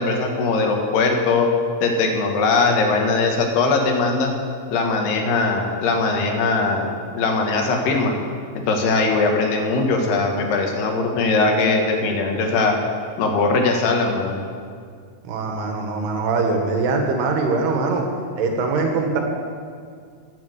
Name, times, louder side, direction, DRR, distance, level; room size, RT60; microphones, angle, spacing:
voice 1, 0.0-1.5 1.8-4.3 4.7-6.9 7.2-8.1 8.7-12.8 13.2-14.4, left 3 dB, 85° left, 2 dB, 3.6 m, -20 dB
voice 2, 15.2-18.0 18.4-19.2, right 3 dB, 90° right, 2 dB, 3.7 m, -22 dB
14.5 x 8.7 x 8.1 m, 2.1 s
omnidirectional pair, 4.5 m